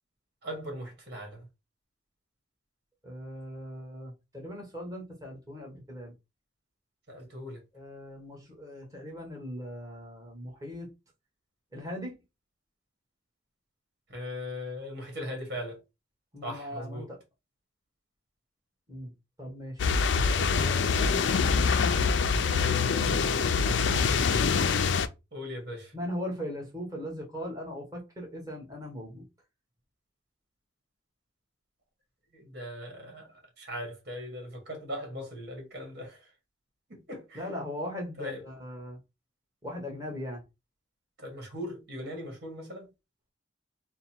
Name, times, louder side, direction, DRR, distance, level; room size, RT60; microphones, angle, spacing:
voice 1, 0.4-1.5 7.1-7.6 14.1-15.8 16.4-17.1 25.3-25.9 32.3-36.3 36.9-37.5 38.2-38.4 41.2-42.9, equal, 55° right, 1.7 m, -39 dB
voice 2, 3.0-6.1 7.7-10.9 11.7-12.2 16.3-17.2 18.9-19.1 19.4-21.2 22.5-24.1 25.9-29.2 37.3-39.0 39.6-40.4, left 1 dB, 20° right, 1.5 m, -39 dB
sound 1, 19.8-25.1, left 5 dB, 75° left, 0.4 m, -25 dB
4.0 x 2.2 x 4.4 m
head